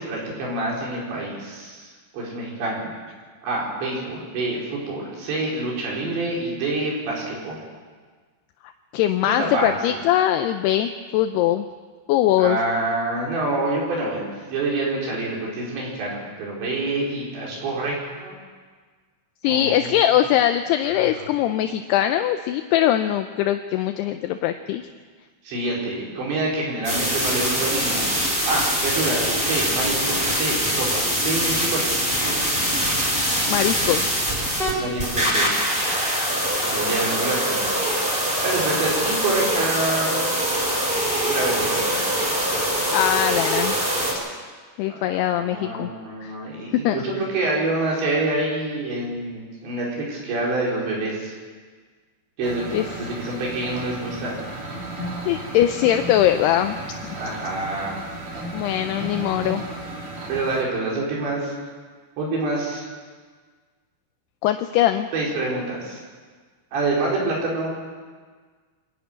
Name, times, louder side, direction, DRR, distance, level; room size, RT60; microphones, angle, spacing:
voice 1, 0.0-2.9 3.4-7.6 9.2-10.0 12.4-14.2 14.5-18.4 19.5-20.0 20.9-21.3 25.5-28.1 28.5-32.0 34.7-35.5 36.7-37.8 38.4-40.2 41.2-42.1 44.9-51.3 52.4-54.4 57.2-58.0 60.3-61.5 62.2-62.9 65.1-66.0 66.7-67.7, right 2 dB, 70° right, -3 dB, 7.0 m, -27 dB
voice 2, 8.9-11.7 12.1-12.6 19.4-24.8 33.5-34.2 42.9-43.8 44.8-45.9 46.2-46.3 46.8-47.0 52.7-52.8 55.3-56.8 58.5-59.6 64.4-65.1, left 12 dB, 80° left, 7 dB, 2.4 m, -21 dB
sound 1, 26.8-44.1, equal, 10° right, 5.5 m, -23 dB
sound 2, 52.4-60.6, right 1 dB, 35° right, 3.2 m, -34 dB
25.5 x 11.0 x 9.4 m, 1.5 s
omnidirectional pair, 5.3 m